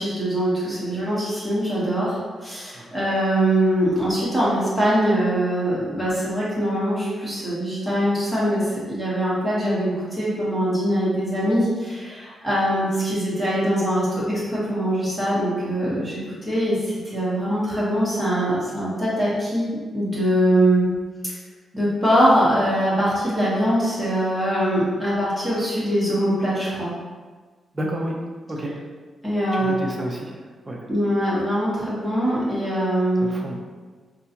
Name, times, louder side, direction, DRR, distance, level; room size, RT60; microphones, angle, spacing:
voice 1, 0.0-19.7 19.9-20.9 21.7-26.9 29.2-29.7 30.9-33.3, equal, ahead, -9 dB, 1.1 m, -22 dB
voice 2, 27.7-28.2 28.5-28.8 29.5-30.4 30.7-30.8 33.2-33.6, right 1 dB, 20° right, -1 dB, 0.5 m, -30 dB
4.3 x 2.3 x 2.8 m, 1.4 s
wide cardioid pair, 160°, 0 cm